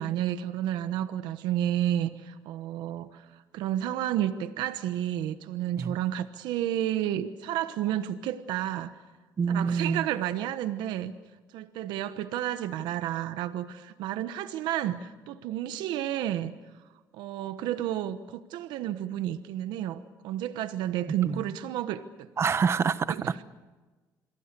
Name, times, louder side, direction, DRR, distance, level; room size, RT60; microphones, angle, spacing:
voice 1, 0.0-3.2 3.5-8.9 9.5-11.1 11.5-16.5 17.1-22.3 23.1-23.3, right 12 dB, 85° right, 11 dB, 1.1 m, -31 dB
voice 2, 9.4-10.1 21.2-21.4 22.4-23.4, right 6 dB, 35° right, 15 dB, 0.9 m, -27 dB
27.0 x 22.5 x 6.8 m, 1.3 s
cardioid pair, 105°, 8 cm